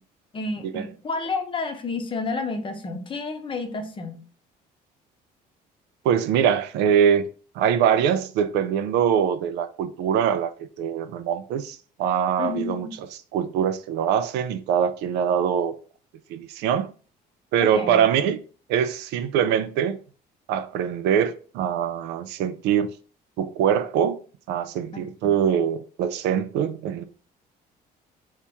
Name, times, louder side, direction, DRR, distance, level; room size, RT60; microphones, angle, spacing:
voice 1, 0.3-4.2 12.4-12.9 17.6-18.0 24.9-25.3, left 3 dB, 30° left, 0.7 m, -31 dB
voice 2, 6.0-7.3 7.6-10.5 10.8-12.9 13.3-15.7 16.3-16.9 17.5-18.4 18.7-20.0 20.5-22.9 23.4-24.2 24.5-27.0, right 8 dB, 85° right, 0.4 m, -23 dB
2.9 x 2.9 x 3.4 m
cardioid pair, 110°, 17 cm